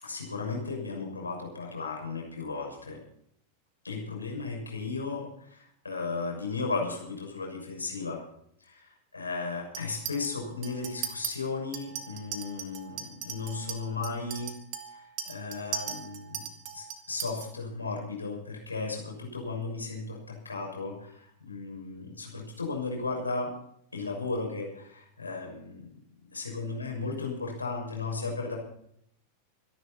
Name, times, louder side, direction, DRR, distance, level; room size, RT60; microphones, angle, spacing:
voice 1, 0.0-3.0 3.8-8.2 9.1-14.5 14.9-16.4 16.7-23.5 23.9-25.9 26.2-28.6, left 3 dB, 80° left, 0 dB, 6.3 m, -35 dB
Chink clink, 9.7-10.3 10.6-11.3 11.7-17.5, right 9 dB, 40° right, 2.4 m, -38 dB
26.0 x 11.0 x 4.2 m, 0.71 s
figure-of-eight pair, 90°, 0 cm